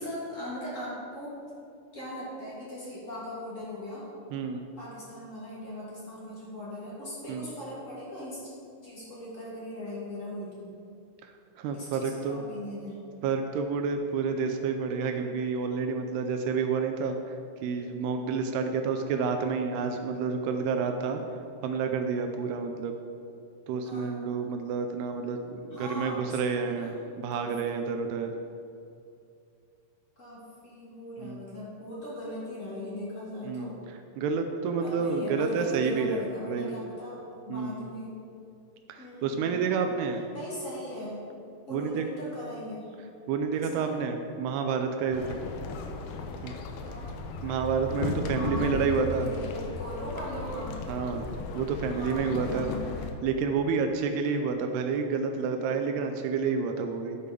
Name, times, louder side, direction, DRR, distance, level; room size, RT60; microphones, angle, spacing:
voice 1, 0.0-1.4 1.9-4.1 4.8-8.5 8.8-10.7 11.7-13.0 14.9-15.3 23.8-24.3 25.7-26.9 27.3-27.9 30.2-33.7 34.8-38.1 39.0-39.6 40.3-41.2 41.7-43.0 43.5-43.9 46.8-47.3 48.3-50.8 51.9-52.9 53.8-53.9 55.3-56.0, equal, 25° left, -8 dB, 1.8 m, -40 dB
voice 2, 4.3-4.7 7.3-7.5 11.2-12.4 13.2-17.4 17.6-21.2 21.6-23.0 23.7-28.3 31.2-31.4 33.4-33.7 34.2-36.8 37.5-37.8 38.9-40.4 41.7-42.1 43.3-45.4 46.4-46.5 47.4-49.3 50.9-51.2 51.5-52.7 53.2-57.2, right 5 dB, 80° right, 5 dB, 2.3 m, -29 dB
sound 1, 45.1-53.1, left 4 dB, 80° left, 2.3 m, -36 dB
11.0 x 6.6 x 5.2 m, 2.5 s
omnidirectional pair, 5.2 m